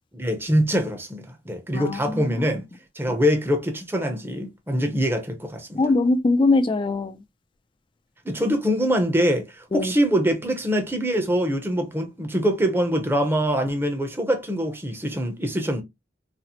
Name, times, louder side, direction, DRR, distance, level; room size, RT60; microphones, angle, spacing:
voice 1, 0.1-2.6 2.9-5.8 8.2-15.8, equal, 10° right, 0.6 m, -24 dB
voice 2, 1.7-2.4 5.8-7.2 9.7-9.9, left 3 dB, 25° left, 0.3 m, -22 dB
4.0 x 2.0 x 2.8 m
head